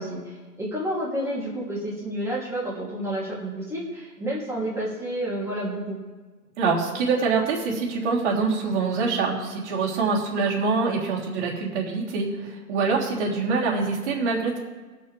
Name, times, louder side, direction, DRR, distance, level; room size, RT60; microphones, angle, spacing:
voice 1, 0.0-6.0, right 1 dB, 5° right, -5 dB, 2.8 m, -30 dB
voice 2, 6.6-14.6, right 4 dB, 45° right, -3 dB, 3.3 m, -25 dB
20.0 x 6.9 x 3.4 m, 1.3 s
hypercardioid pair, 145°, 46 cm